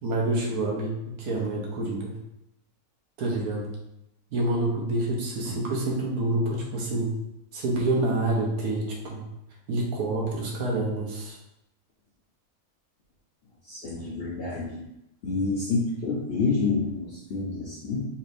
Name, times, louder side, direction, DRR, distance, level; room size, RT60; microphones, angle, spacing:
voice 1, 0.0-2.1 3.2-3.7 4.3-7.1 7.5-9.2 9.7-11.4, right 2 dB, 85° right, -2 dB, 1.4 m, -27 dB
voice 2, 13.7-14.8 15.2-18.1, left 4 dB, 60° left, -3 dB, 0.6 m, -28 dB
4.1 x 3.1 x 2.5 m, 0.85 s
omnidirectional pair, 1.6 m